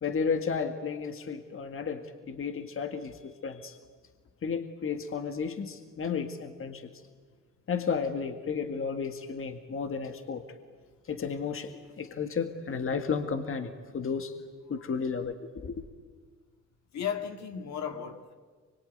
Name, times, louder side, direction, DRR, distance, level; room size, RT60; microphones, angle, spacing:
voice 1, 0.0-3.8 4.4-6.9 7.7-10.5 11.1-14.3 14.7-15.4 15.6-15.8, left 5 dB, 45° left, 1.9 m, -33 dB
voice 2, 16.9-18.3, left 8 dB, 65° left, 2.1 m, -35 dB
24.5 x 22.5 x 9.4 m
cardioid pair, 90°, 30 cm